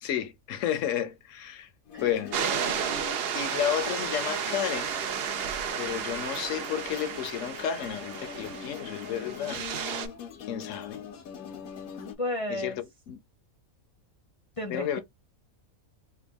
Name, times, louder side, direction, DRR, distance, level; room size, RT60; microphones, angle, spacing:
voice 1, 0.0-1.7 2.0-2.3 3.3-4.9 5.8-9.6 10.5-11.0 12.5-12.7 13.1-13.2 14.7-15.0, left 10 dB, 70° left, 1.0 m, -31 dB
sound 1, 1.9-12.2, left 8 dB, 85° left, 1.2 m, -43 dB
beach waves, 2.3-10.1, right 7 dB, 60° right, 0.7 m, -33 dB
voice 2, 12.2-12.8 14.6-15.0, left 1 dB, 35° left, 0.6 m, -32 dB
3.4 x 2.3 x 3.4 m
omnidirectional pair, 1.4 m